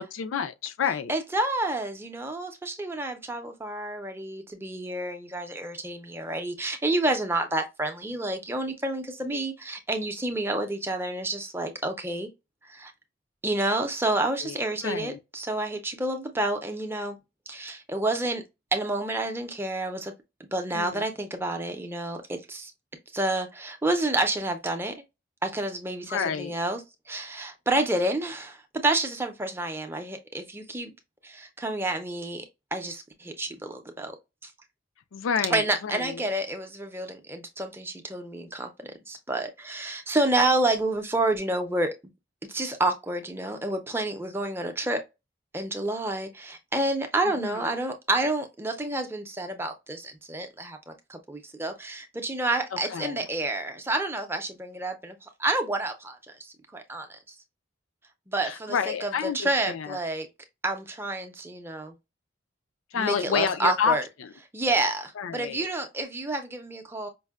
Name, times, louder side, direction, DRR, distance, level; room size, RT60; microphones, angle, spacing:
voice 1, 0.0-1.1 14.4-15.2 20.7-21.0 26.1-26.5 35.1-36.3 47.4-47.7 52.7-53.3 58.4-60.0 62.9-64.3 65.2-65.7, left 6 dB, 85° left, 0.4 m, -30 dB
voice 2, 1.1-12.3 12.7-12.9 13.4-17.2 17.5-18.4 18.7-20.1 20.5-22.7 23.1-24.9 25.4-26.8 27.1-28.6 28.8-30.9 31.2-32.4 32.7-34.2 35.5-41.9 42.5-45.0 45.5-57.2 58.3-60.3 60.6-61.9 62.9-64.0 64.5-67.1, right 2 dB, 10° right, 0.5 m, -29 dB
5.2 x 2.1 x 2.3 m
head